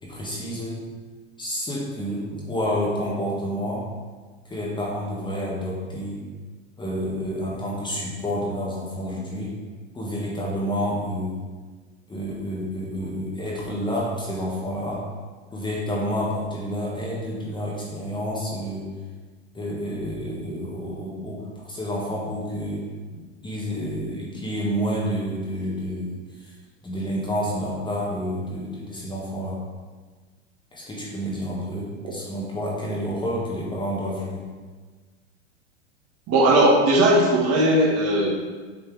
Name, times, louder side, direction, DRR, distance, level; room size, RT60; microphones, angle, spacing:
voice 1, 0.0-0.9 1.4-3.9 4.4-6.2 6.8-9.5 9.9-11.4 12.1-15.0 15.5-18.9 19.5-22.8 23.1-26.5 26.8-29.6 30.7-34.4, equal, 15° left, -4 dB, 1.4 m, -29 dB
voice 2, 36.3-38.3, right 1 dB, 40° right, -3 dB, 1.8 m, -18 dB
7.8 x 4.4 x 3.4 m, 1.4 s
hypercardioid pair, 110°, 36 cm